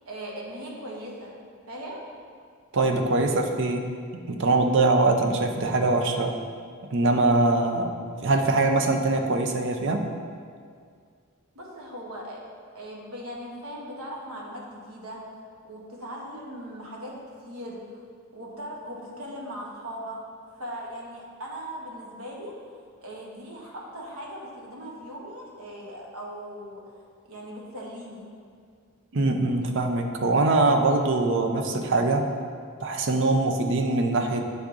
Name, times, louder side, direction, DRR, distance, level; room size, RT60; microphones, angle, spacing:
voice 1, 0.0-1.4 1.7-2.0 11.5-12.4 12.7-15.2 15.6-17.1 17.4-18.0 18.3-20.2 20.5-22.5 23.0-26.9 27.3-28.3, equal, 75° right, -3 dB, 1.2 m, -39 dB
voice 2, 2.7-6.3 6.9-7.9 8.2-10.1 29.1-32.3 32.8-34.4, right 2 dB, 55° right, 4 dB, 0.5 m, -23 dB
8.6 x 3.6 x 3.8 m, 2.1 s
head